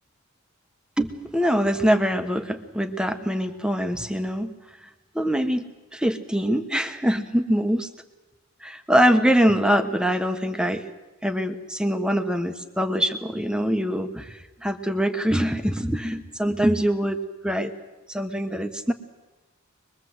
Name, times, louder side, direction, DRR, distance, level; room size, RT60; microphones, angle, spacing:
voice 1, 1.0-4.5 5.1-5.6 5.9-7.9 8.6-10.9 11.2-17.7 18.1-18.9, equal, 5° right, 8 dB, 1.2 m, -23 dB
24.0 x 22.0 x 8.0 m, 1.2 s
head